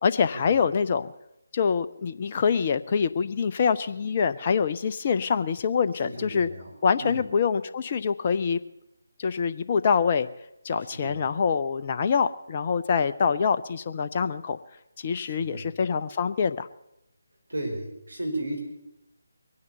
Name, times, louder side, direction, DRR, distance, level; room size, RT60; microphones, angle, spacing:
voice 1, 0.0-1.1 1.5-6.5 6.8-8.6 9.2-10.3 10.6-14.6 15.0-16.7, left 6 dB, 30° left, 10 dB, 0.5 m, -25 dB
voice 2, 6.0-7.2 10.9-11.2 15.2-15.7 17.5-18.6, right 1 dB, 70° right, 2 dB, 5.1 m, -34 dB
22.0 x 9.5 x 6.8 m, 0.87 s
figure-of-eight pair, 150°, 0 cm